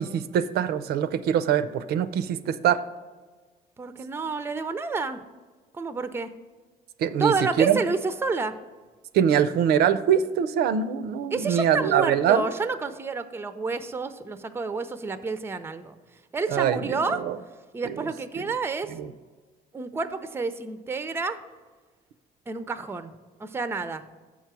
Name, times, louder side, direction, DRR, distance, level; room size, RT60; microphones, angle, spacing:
voice 1, 0.0-2.8 7.0-7.8 9.1-12.5 16.5-17.4 17.8-18.1 18.4-18.5 18.9-19.1, right 9 dB, 70° right, 12 dB, 0.5 m, -23 dB
voice 2, 3.8-5.2 5.7-6.3 7.2-8.5 11.3-15.9 16.3-17.2 17.7-18.9 19.7-21.4 22.5-23.1 23.4-24.0, right 4 dB, 15° right, 11 dB, 0.4 m, -29 dB
7.2 x 4.6 x 6.0 m, 1.3 s
cardioid pair, 110°, 17 cm